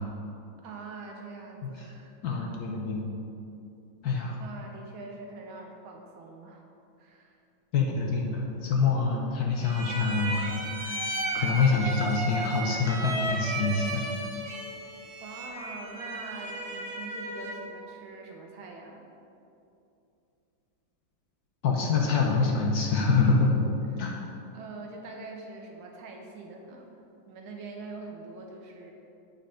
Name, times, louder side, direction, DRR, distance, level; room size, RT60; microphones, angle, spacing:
voice 1, 0.6-2.4 4.4-6.6 7.0-7.4 15.2-19.0 23.9-24.1 24.5-27.0 27.3-28.9, right 3 dB, 85° right, 1 dB, 1.8 m, -44 dB
voice 2, 2.2-3.1 4.0-4.4 7.7-14.0 21.6-23.5 24.0-24.2, left 4 dB, 60° left, -1 dB, 1.2 m, -26 dB
sound 1, 9.6-17.7, right 1 dB, 30° right, 0.7 m, -34 dB
7.9 x 5.6 x 5.1 m, 2.7 s
omnidirectional pair, 2.2 m